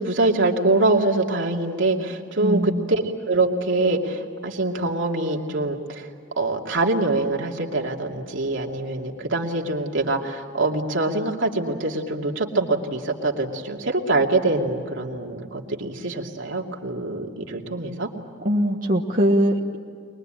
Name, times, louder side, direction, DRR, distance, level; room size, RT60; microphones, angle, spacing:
voice 1, 0.0-6.1 6.4-18.1, right 2 dB, 75° right, 0 dB, 2.6 m, -24 dB
voice 2, 2.4-2.9 18.4-19.8, equal, 40° right, -2 dB, 1.4 m, -21 dB
23.5 x 21.5 x 9.0 m, 2.3 s
head